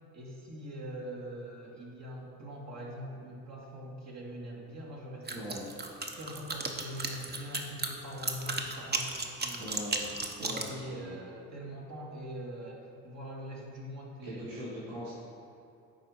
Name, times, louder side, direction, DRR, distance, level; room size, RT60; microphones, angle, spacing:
voice 1, 0.1-5.5 6.2-9.8 10.4-14.5, equal, 50° right, -3 dB, 1.8 m, -43 dB
sound 1, 5.3-10.7, right 3 dB, 30° right, 0.9 m, -34 dB
voice 2, 5.3-5.6 9.6-11.2 14.2-15.1, equal, 85° right, -8 dB, 1.8 m, -41 dB
9.9 x 4.0 x 4.8 m, 2.7 s
supercardioid pair, 70°, 35 cm